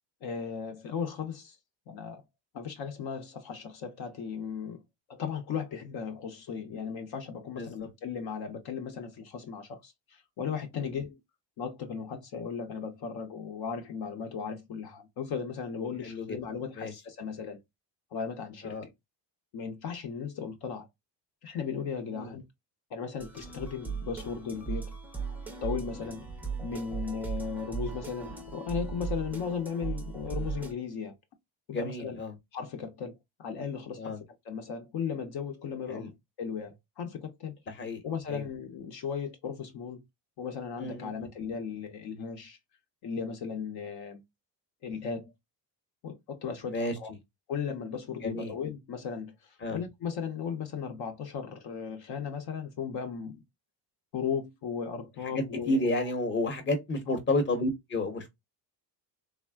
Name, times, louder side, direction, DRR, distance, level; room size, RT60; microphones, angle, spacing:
voice 1, 0.2-1.6 1.9-2.2 2.5-4.8 5.1-11.2 11.6-17.6 18.1-18.9 19.5-20.9 21.4-22.4 22.9-24.9 25.6-26.3 26.6-31.1 31.7-32.2 32.5-34.2 34.4-36.1 36.4-37.5 38.0-40.0 40.4-42.6 43.0-44.2 44.8-45.3 46.0-47.1 47.5-53.4 54.1-56.1 57.1-57.2, left 6 dB, 60° left, 0.7 m, -36 dB
voice 2, 16.0-16.4 16.8-16.9 18.6-18.8 22.1-22.4 31.7-32.3 34.0-34.2 35.9-36.1 37.7-38.0 38.3-38.4 40.8-41.1 46.7-46.9 48.2-48.5 49.6-49.8 55.2-58.3, left 2 dB, 25° left, 0.8 m, -31 dB
sound 1, 23.2-30.7, right 5 dB, 5° right, 0.4 m, -37 dB
3.3 x 2.1 x 2.2 m
cardioid pair, 125°, 44 cm